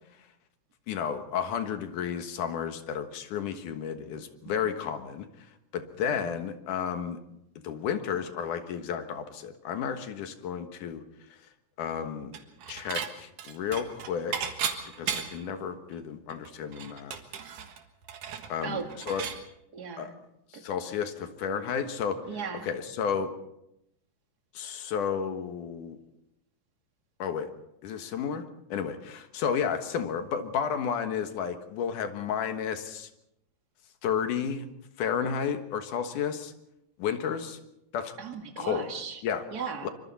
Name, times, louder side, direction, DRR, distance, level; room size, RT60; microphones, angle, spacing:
voice 1, 0.9-5.3 5.7-7.2 7.6-11.0 11.8-12.3 12.7-14.6 15.0-17.2 18.5-19.2 20.0-20.1 20.5-22.2 22.6-23.3 24.5-26.0 27.2-27.5 27.8-28.4 28.7-33.1 34.0-34.7 35.0-36.5 37.0-37.6 37.9-38.1 38.6-38.9 39.2-39.4 39.8-39.9, left 7 dB, 85° left, 7 dB, 3.0 m, -32 dB
Dishes pots and pans / Chink clink, 12.3-13.1 13.4-15.5 15.9-16.0 16.3-19.4, right 7 dB, 90° right, 3.1 m, -35 dB
voice 2, 19.7-20.1 22.3-22.7 38.2-39.2 39.5-39.9, right 6 dB, 35° right, 3 dB, 2.4 m, -37 dB
25.5 x 24.5 x 4.2 m, 0.83 s
omnidirectional pair, 3.5 m